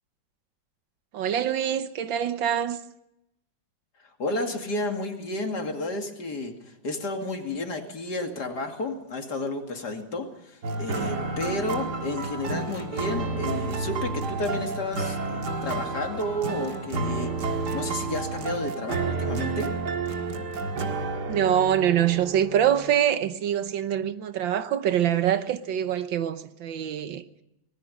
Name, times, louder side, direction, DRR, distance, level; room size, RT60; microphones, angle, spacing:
voice 1, 1.1-2.8 21.3-27.2, right 10 dB, 80° right, 1.8 m, -24 dB
voice 2, 4.0-19.8, left 1 dB, 60° left, 2.9 m, -32 dB
sound 1, 10.6-22.9, right 3 dB, 60° right, 2.3 m, -30 dB
25.0 x 19.5 x 5.4 m
omnidirectional pair, 2.0 m